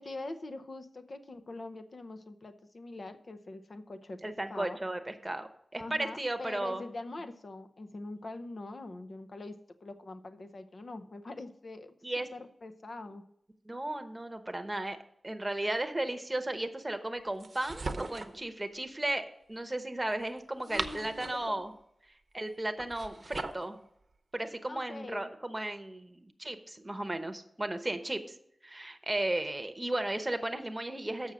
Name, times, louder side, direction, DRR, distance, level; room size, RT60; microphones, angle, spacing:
voice 1, 0.0-4.8 5.8-11.9 12.3-13.2 20.6-21.6 24.6-25.3, left 2 dB, 55° left, 9 dB, 0.7 m, -43 dB
voice 2, 4.2-6.8 12.0-12.3 13.7-15.0 15.2-21.7 22.3-23.8 24.3-28.2 28.6-31.3, right 1 dB, 20° right, 7 dB, 0.9 m, -35 dB
sound 1, 17.4-18.4 20.4-21.5 22.8-23.7, right 3 dB, 50° right, 0.8 m, -39 dB
7.2 x 6.1 x 6.2 m, 0.72 s
wide cardioid pair, 90°, 0 cm